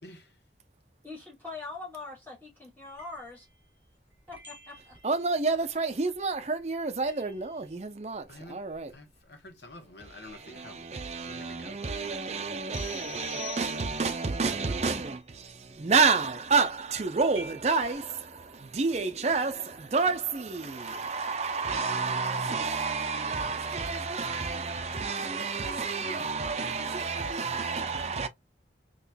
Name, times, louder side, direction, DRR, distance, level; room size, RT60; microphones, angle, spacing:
voice 1, 0.0-0.4 8.3-8.6 8.9-10.9 11.2-11.8, left 2 dB, 75° left, 1.1 m, -48 dB
voice 2, 1.0-3.5 4.3-5.0, left 3 dB, 10° left, 2.2 m, -42 dB
sound 1, 2.8-9.4 9.7-18.0, right 1 dB, 10° right, 2.5 m, -55 dB
voice 3, 5.0-8.9 10.1-28.3, right 4 dB, 35° right, 0.5 m, -29 dB
sound 2, 12.7-14.3, left 22 dB, 40° left, 0.3 m, -44 dB
4.2 x 3.0 x 2.2 m
head